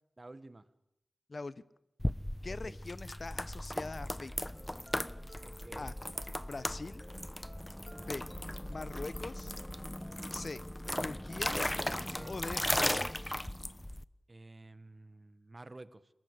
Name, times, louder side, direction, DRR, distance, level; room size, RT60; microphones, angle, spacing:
voice 1, 0.2-0.7 2.5-2.8 5.4-5.9 7.7-8.1 10.1-10.3 12.0-12.4 14.3-16.1, right 2 dB, 40° right, 13 dB, 1.7 m, -52 dB
sound 1, 2.0-14.0, left 1 dB, 15° left, 1.0 m, -37 dB
voice 2, 2.4-4.3 5.8-5.9 6.4-7.0 8.0-8.3 8.6-9.5 10.3-10.6 11.0-11.6 12.2-13.1, left 3 dB, 55° left, 16 dB, 1.0 m, -42 dB
sound 2, 4.5-13.3, equal, 10° right, 2.6 m, -57 dB
28.0 x 20.5 x 8.5 m, 0.81 s
cardioid pair, 50°, 0 cm